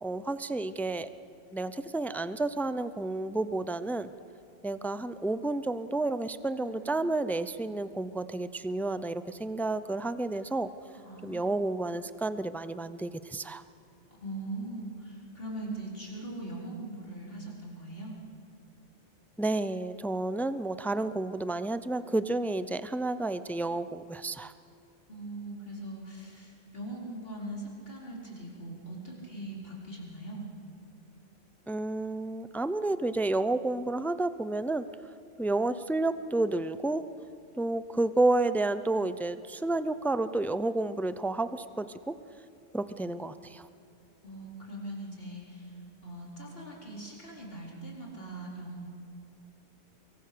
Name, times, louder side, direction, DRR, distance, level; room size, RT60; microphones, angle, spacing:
voice 1, 0.0-1.1 1.5-4.1 4.6-10.7 11.2-13.6 19.4-24.5 31.7-34.8 35.4-37.0 37.6-42.1 42.7-43.7, right 2 dB, 5° left, 13 dB, 0.4 m, -30 dB
voice 2, 6.5-7.0 10.9-11.6 14.2-18.1 25.1-30.4 44.2-45.7 46.0-48.9, right 1 dB, 55° left, -2 dB, 4.5 m, -41 dB
24.5 x 22.5 x 6.8 m, 2.5 s
omnidirectional pair, 1.1 m